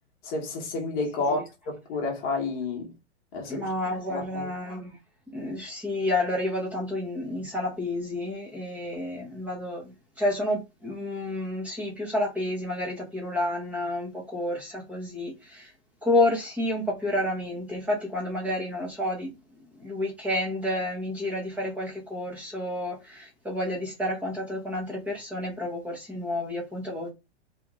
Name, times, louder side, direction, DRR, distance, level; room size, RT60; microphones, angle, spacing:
voice 1, 0.2-2.9 3.3-3.6 4.1-4.5, left 3 dB, 25° left, 1.2 m, -30 dB
voice 2, 3.5-4.9 5.3-15.7 16.0-19.3 19.8-27.1, left 1 dB, 5° right, 0.9 m, -30 dB
3.3 x 3.1 x 3.6 m
hypercardioid pair, 160°, 35 cm